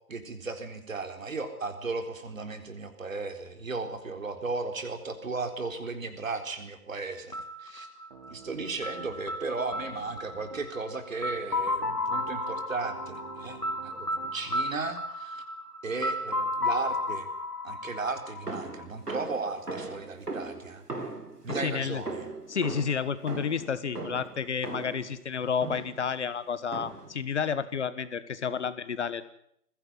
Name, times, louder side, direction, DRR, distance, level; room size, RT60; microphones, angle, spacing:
voice 1, 0.1-7.9 8.3-15.4 15.8-17.3 17.6-20.8 21.4-22.3, right 3 dB, 60° right, 8 dB, 4.1 m, -35 dB
sound 1, 7.3-19.1, left 2 dB, 85° left, 2.7 m, -34 dB
Piano, 8.1-9.2 9.6-10.7 11.3-14.6, right 7 dB, 35° right, 3.5 m, -49 dB
sound 2, 18.5-25.1 25.6-26.1 26.7-27.2, right 3 dB, 80° right, 3.5 m, -39 dB
voice 2, 21.6-22.0 22.5-29.3, left 6 dB, 45° left, 15 dB, 1.5 m, -31 dB
21.5 x 16.5 x 9.6 m, 0.70 s
figure-of-eight pair, 135°, 46 cm